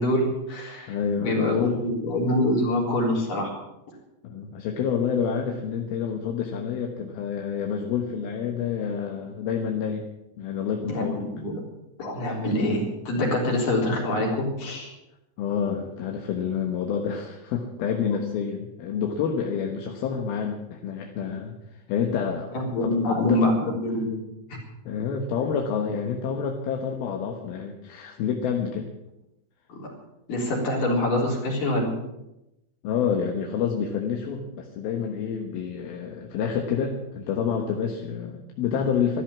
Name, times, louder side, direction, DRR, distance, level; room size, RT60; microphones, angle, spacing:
voice 1, 0.0-3.5 10.9-11.6 12.0-14.9 22.5-24.2 29.7-29.9 30.3-31.9, left 1 dB, 50° left, -2 dB, 5.2 m, -25 dB
voice 2, 0.9-1.9 4.2-10.0 10.4-11.2 15.4-21.6 21.9-23.4 24.9-28.9 32.8-39.2, left 7 dB, 65° left, 2 dB, 2.9 m, -28 dB
13.5 x 12.5 x 7.3 m, 0.92 s
omnidirectional pair, 5.1 m